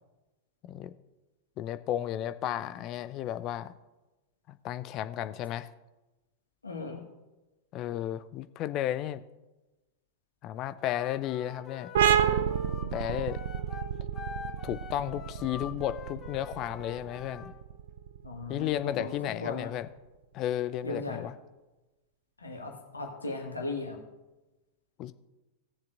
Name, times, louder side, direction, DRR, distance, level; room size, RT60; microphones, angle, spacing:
voice 1, 1.6-3.7 4.5-5.7 7.7-9.2 10.4-11.9 12.6-13.4 14.6-17.5 18.5-19.9 20.3-21.3 25.0-25.1, left 12 dB, 35° left, 13 dB, 0.4 m, -33 dB
voice 2, 6.6-7.0 18.2-19.7 20.8-21.2 22.4-24.0, left 2 dB, 80° left, 1 dB, 1.6 m, -37 dB
Wind instrument woodwind instrument, 10.8-17.5, left 6 dB, 20° left, 1.2 m, -45 dB
sound 1, 11.9-19.2, right 9 dB, 60° right, 0.5 m, -30 dB
18.0 x 7.2 x 2.5 m, 1.1 s
figure-of-eight pair, 90°, 0 cm